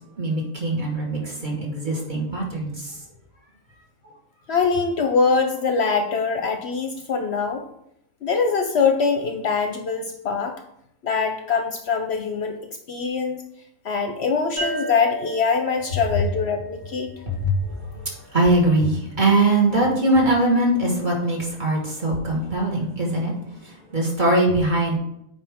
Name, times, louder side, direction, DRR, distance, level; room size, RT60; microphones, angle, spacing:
voice 1, 0.2-3.0 17.3-23.3 23.6-25.0, right 1 dB, 35° right, -3 dB, 1.9 m, -22 dB
voice 2, 4.5-7.6 8.2-10.6 11.0-12.6 12.9-13.4 13.8-17.1, left 5 dB, 60° left, 5 dB, 0.8 m, -23 dB
sound 1, 14.6-18.0, right 1 dB, 80° right, 3.4 m, -34 dB
8.5 x 4.8 x 3.6 m, 0.77 s
omnidirectional pair, 1.4 m